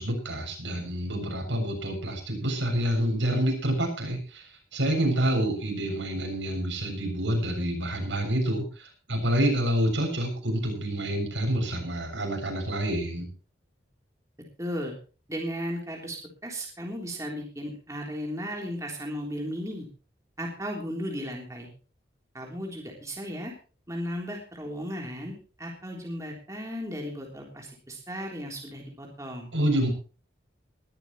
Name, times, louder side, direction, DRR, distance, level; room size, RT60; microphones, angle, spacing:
voice 1, 0.0-13.3 29.5-29.9, right 1 dB, 85° right, 2 dB, 7.1 m, -28 dB
voice 2, 14.6-14.9 15.3-19.9 20.4-21.7 22.3-23.5 23.9-25.3 25.6-29.5, equal, 15° right, -1 dB, 3.5 m, -35 dB
21.0 x 13.0 x 3.2 m, 0.36 s
head